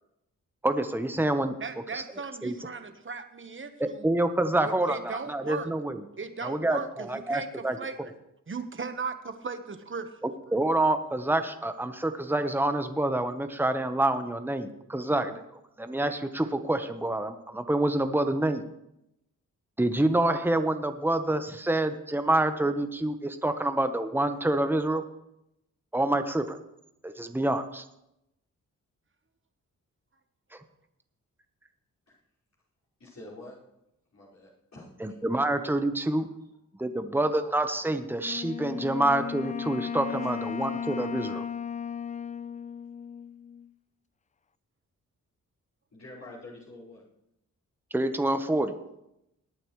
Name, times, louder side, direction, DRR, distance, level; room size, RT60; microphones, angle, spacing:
voice 1, 0.6-1.5 1.9-2.0 2.4-2.5 3.8-6.0 6.4-7.8 10.2-18.6 19.8-25.0 25.9-26.6 27.0-27.8 30.5-30.6 35.0-36.3 36.8-41.4 47.9-48.7, right 1 dB, 5° right, 8 dB, 1.2 m, -27 dB
voice 2, 1.6-4.1 4.6-5.7 6.2-8.0 8.5-10.2, right 5 dB, 35° right, 8 dB, 1.4 m, -37 dB
voice 3, 33.0-33.5 34.1-35.2 45.9-47.0, left 2 dB, 55° left, -8 dB, 5.5 m, -47 dB
Wind instrument woodwind instrument, 38.2-43.7, left 7 dB, 25° left, 0.4 m, -35 dB
20.5 x 8.9 x 3.3 m, 0.84 s
cardioid pair, 50°, 34 cm